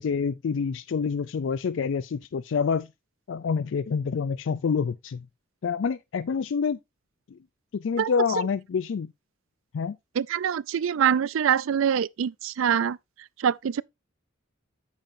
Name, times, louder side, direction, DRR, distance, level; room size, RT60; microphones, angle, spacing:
voice 1, 0.0-2.9 3.3-5.3 5.6-6.8 7.3-7.4 7.7-9.1 9.7-10.0, left 6 dB, 65° left, 0.4 m, -27 dB
voice 2, 10.2-13.0 13.4-13.8, right 8 dB, 80° right, 0.4 m, -24 dB
8.9 x 7.3 x 2.6 m
head